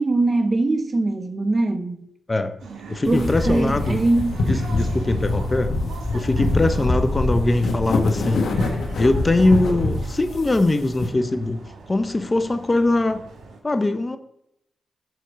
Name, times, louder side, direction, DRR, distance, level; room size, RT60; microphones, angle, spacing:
voice 1, 0.0-2.0 3.1-4.4, right 2 dB, 40° right, 0.9 m, -22 dB
sound 1, 2.6-13.6, right 4 dB, 85° right, 1.4 m, -40 dB
voice 2, 2.9-4.0 4.5-5.7 6.1-8.5 9.0-11.6 11.9-13.2 13.6-14.2, left 2 dB, 30° left, 0.8 m, -21 dB
sound 2, 3.0-11.1, left 2 dB, 75° left, 1.5 m, -25 dB
6.7 x 4.6 x 6.6 m
cardioid pair, 55°, 0 cm